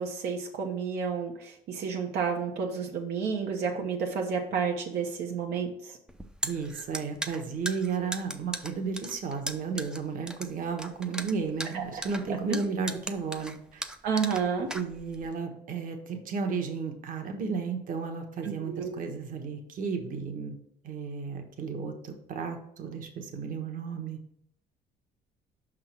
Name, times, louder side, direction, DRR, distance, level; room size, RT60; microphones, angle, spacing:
voice 1, 0.0-6.0 11.7-12.0 12.5-12.6 14.0-14.7 18.4-18.9, right 6 dB, 80° right, 1 dB, 1.1 m, -31 dB
sound 1, 6.1-15.3, right 1 dB, 5° right, 0.5 m, -38 dB
voice 2, 6.4-13.8 14.7-20.6 20.8-24.2, right 5 dB, 55° right, 4 dB, 1.3 m, -33 dB
5.7 x 3.8 x 6.0 m, 0.73 s
cardioid pair, 110°, 17 cm